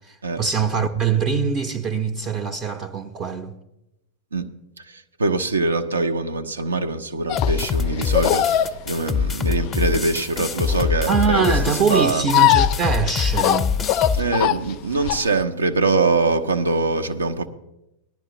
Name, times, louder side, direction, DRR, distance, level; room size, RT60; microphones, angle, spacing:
voice 1, 0.0-3.6 11.1-13.7, right 6 dB, 25° right, 0.6 m, -23 dB
voice 2, 4.9-11.5 11.9-12.2 14.1-17.5, right 3 dB, 75° right, 0.7 m, -23 dB
sound 1, 7.3-15.4, left 13 dB, 40° left, 0.4 m, -22 dB
sound 2, 7.4-14.2, left 6 dB, 15° left, 0.8 m, -24 dB
17.5 x 11.5 x 2.9 m
figure-of-eight pair, 90°, 0 cm